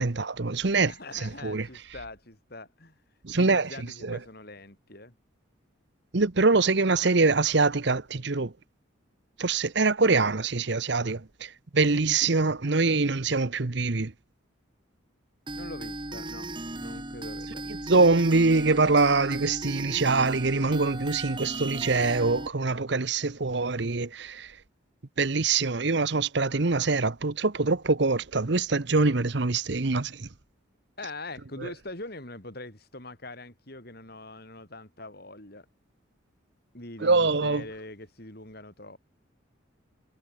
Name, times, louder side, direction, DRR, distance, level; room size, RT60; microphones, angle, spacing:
voice 1, 0.0-1.7 3.2-3.7 4.0-4.2 6.1-8.5 9.4-14.1 17.7-24.5 25.2-30.3 31.6-31.7 37.0-37.6, right 3 dB, 55° right, 0.9 m, -24 dB
voice 2, 0.8-3.0 3.3-5.1 15.5-17.9 31.0-35.7 36.7-39.0, left 2 dB, 50° left, 4.7 m, -43 dB
sound 1, 15.5-22.5, right 2 dB, 25° right, 2.6 m, -37 dB
head